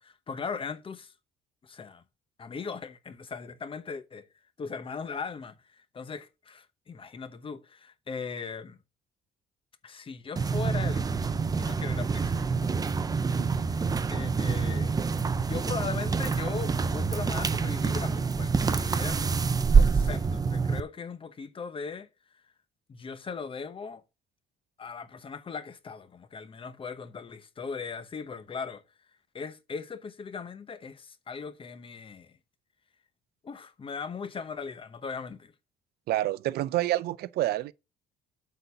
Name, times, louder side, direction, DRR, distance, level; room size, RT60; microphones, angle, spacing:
voice 1, 0.0-1.1 1.6-2.0 2.4-4.2 4.6-8.8 9.8-12.5 13.6-15.0 15.4-19.3 19.7-22.1 22.9-24.0 24.8-28.8 29.3-32.4 33.4-35.5, left 5 dB, 30° left, 1.0 m, -39 dB
sound 1, 10.4-20.8, right 5 dB, 20° right, 0.6 m, -26 dB
voice 2, 36.1-37.7, right 15 dB, 70° right, 0.5 m, -28 dB
8.3 x 4.1 x 6.8 m
cardioid pair, 110°, 17 cm